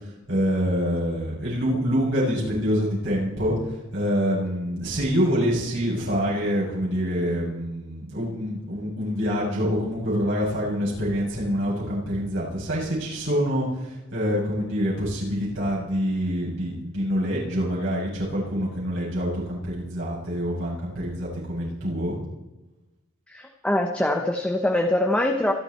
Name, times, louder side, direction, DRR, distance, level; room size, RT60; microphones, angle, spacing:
voice 1, 0.3-22.2, equal, 60° right, -5 dB, 7.8 m, -26 dB
voice 2, 23.3-25.5, left 1 dB, 5° left, 2 dB, 1.1 m, -23 dB
27.0 x 11.5 x 4.4 m, 1.0 s
head